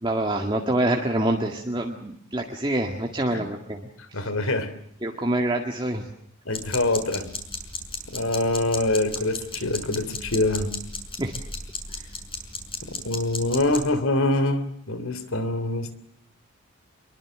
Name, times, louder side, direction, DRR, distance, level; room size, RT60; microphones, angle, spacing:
voice 1, 0.0-3.8 5.0-6.0 11.2-11.3, right 1 dB, 20° right, 1 dB, 2.0 m, -26 dB
voice 2, 4.1-4.7 6.5-7.3 8.1-10.7 13.0-15.9, left 2 dB, 70° left, 14 dB, 3.0 m, -25 dB
sound 1, 6.5-13.9, left 3 dB, 25° left, 6.1 m, -34 dB
26.0 x 23.0 x 7.6 m, 0.68 s
head